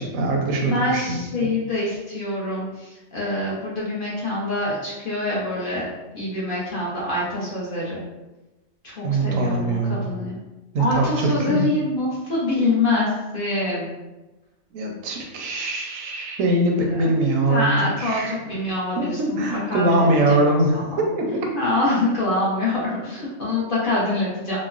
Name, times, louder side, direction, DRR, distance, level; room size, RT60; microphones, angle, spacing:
voice 1, 0.0-1.5 9.0-10.0 10.7-11.7 14.7-18.3 19.0-21.5, right 1 dB, 80° right, 1 dB, 1.0 m, -22 dB
voice 2, 0.6-5.9 6.1-8.0 8.8-10.4 10.8-13.9 16.8-17.1 17.5-21.0 21.6-24.6, left 2 dB, 50° left, -6 dB, 0.8 m, -25 dB
3.0 x 2.0 x 2.4 m, 1.1 s
omnidirectional pair, 1.3 m